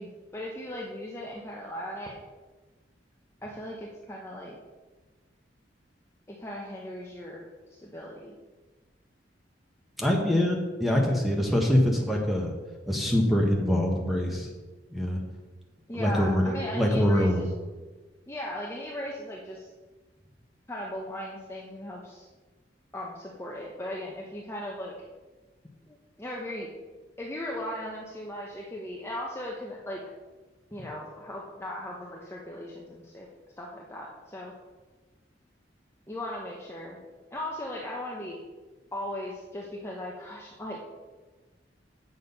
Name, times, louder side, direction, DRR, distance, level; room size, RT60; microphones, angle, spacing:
voice 1, 0.0-2.2 3.4-4.6 6.3-7.5 7.8-8.4 15.9-17.5 18.3-19.7 20.7-22.3 22.9-24.9 25.9-26.7 27.2-30.0 30.7-33.3 33.6-34.5 36.1-37.0 37.3-38.4 38.9-40.8, left 1 dB, 15° left, -3 dB, 0.9 m, -37 dB
voice 2, 10.0-12.5 12.9-14.5 14.9-15.2 15.9-17.5, left 1 dB, ahead, 0 dB, 1.4 m, -24 dB
8.1 x 6.4 x 5.5 m, 1.3 s
head